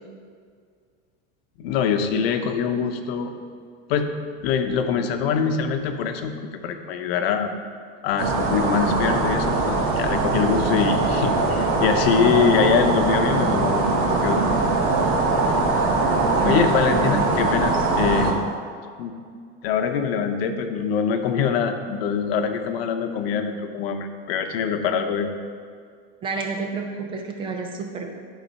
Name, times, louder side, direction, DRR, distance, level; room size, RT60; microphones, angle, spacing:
voice 1, 1.6-3.3 3.9-4.1 4.4-6.4 6.6-7.5 8.0-14.5 16.4-18.4 19.0-19.1 19.6-25.3, left 6 dB, 80° left, 6 dB, 0.9 m, -24 dB
sound 1, 8.2-18.3, right 3 dB, 90° right, 1.9 m, -21 dB
voice 2, 16.3-17.3 17.7-17.9 26.2-28.1, right 4 dB, 15° right, 3 dB, 0.4 m, -30 dB
11.5 x 4.1 x 5.5 m, 2.1 s
supercardioid pair, 175°, 30 cm